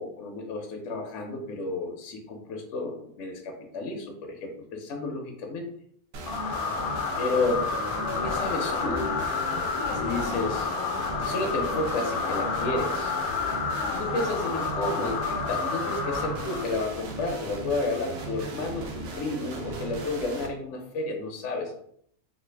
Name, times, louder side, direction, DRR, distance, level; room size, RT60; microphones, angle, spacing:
voice 1, 0.0-5.7 7.2-7.9 8.2-9.1 9.9-10.7 11.2-13.1 13.9-21.8, left 2 dB, 65° left, 2 dB, 0.9 m, -31 dB
sound 1, 6.1-20.5, right 2 dB, 60° right, 0.7 m, -37 dB
sound 2, 6.3-17.0, left 5 dB, 85° left, 1.1 m, -30 dB
3.3 x 2.5 x 3.2 m, 0.67 s
omnidirectional pair, 1.5 m